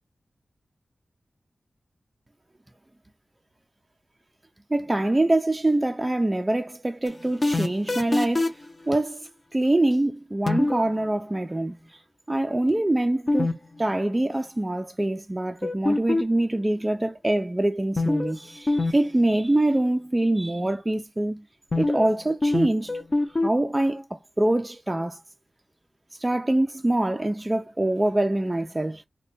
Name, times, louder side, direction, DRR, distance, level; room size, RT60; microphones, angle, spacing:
voice 1, 4.7-8.6 8.9-12.0 12.3-21.4 21.8-23.0 23.4-25.2 26.2-29.0, right 1 dB, 20° right, 0.4 m, -24 dB
sound 1, 7.1-8.7 10.5-10.9 13.3-13.5 13.8-13.9 15.6-16.4 18.0-18.4 18.7-18.9 19.2-19.3 21.7-22.1 22.4-23.5, left 2 dB, 35° left, 0.6 m, -23 dB
3.3 x 2.2 x 3.9 m
wide cardioid pair, 90°, 0 cm